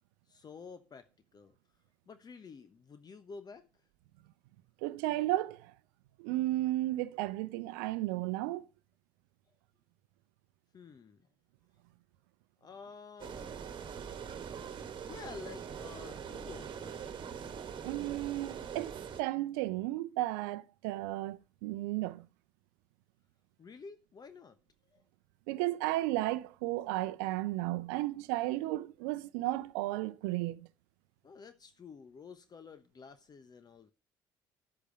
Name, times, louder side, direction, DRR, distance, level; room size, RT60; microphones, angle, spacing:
voice 1, 0.3-1.6 2.1-3.7 10.7-11.2 12.6-13.5 15.0-17.0 23.6-24.6 24.8-25.0 31.2-33.9, left 5 dB, 35° left, 1.1 m, -50 dB
voice 2, 4.8-5.7 6.2-8.7 17.8-22.3 25.5-30.7, right 17 dB, 70° right, 0.6 m, -34 dB
sound 1, 13.2-19.2, right 7 dB, 45° right, 1.5 m, -43 dB
11.0 x 8.2 x 5.2 m
figure-of-eight pair, 55°, 11 cm